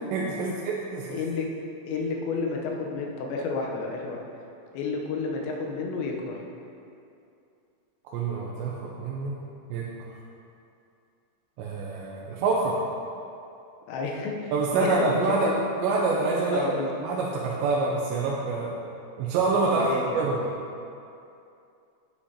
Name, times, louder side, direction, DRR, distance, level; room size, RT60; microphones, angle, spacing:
voice 1, 0.0-1.2 8.1-9.4 9.7-9.9 11.6-12.8 14.5-15.5 15.8-16.6 17.0-18.7 19.2-20.5, right 3 dB, 80° right, -4 dB, 2.8 m, -26 dB
voice 2, 1.1-1.5 1.9-4.2 4.7-6.4 13.9-15.1 16.5-16.9 19.7-20.3, left 4 dB, 80° left, 0 dB, 3.0 m, -31 dB
9.8 x 8.3 x 2.8 m, 2.6 s
omnidirectional pair, 5.2 m